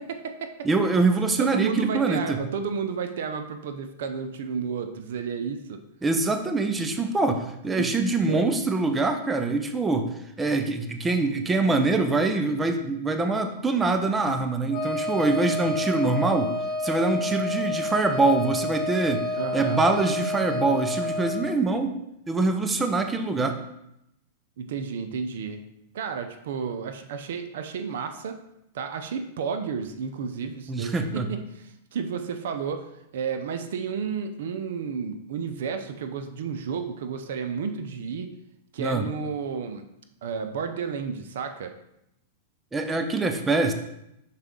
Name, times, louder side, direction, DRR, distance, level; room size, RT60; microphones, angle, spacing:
voice 1, 0.0-0.7 1.4-5.8 7.3-7.5 7.8-8.5 19.3-19.8 24.6-25.6 25.9-28.4 28.7-38.3 38.7-39.8 40.2-41.7, right 6 dB, 70° right, 8 dB, 0.6 m, -32 dB
voice 2, 0.6-2.4 6.0-7.4 7.6-10.1 10.4-16.5 16.8-19.2 19.5-22.0 22.3-23.6 30.7-31.3 38.8-39.1 42.7-43.7, right 3 dB, 15° right, 6 dB, 0.6 m, -24 dB
Wind instrument woodwind instrument, 14.7-21.4, left 2 dB, 35° left, 2.1 m, -29 dB
5.7 x 4.6 x 3.8 m, 0.81 s
hypercardioid pair, 125°, 0 cm